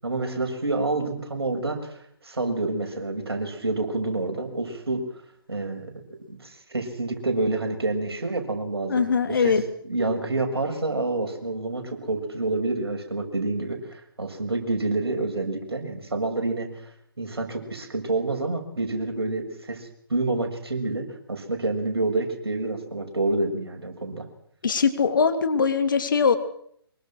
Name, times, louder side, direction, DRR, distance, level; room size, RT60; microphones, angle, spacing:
voice 1, 0.0-1.9 2.2-5.0 5.5-6.0 6.3-9.6 9.9-16.7 17.2-24.2, right 2 dB, 70° right, 4 dB, 6.4 m, -28 dB
voice 2, 8.9-9.6 24.6-26.4, left 5 dB, 50° left, 8 dB, 3.0 m, -21 dB
24.5 x 23.5 x 6.1 m, 0.66 s
figure-of-eight pair, 140°, 13 cm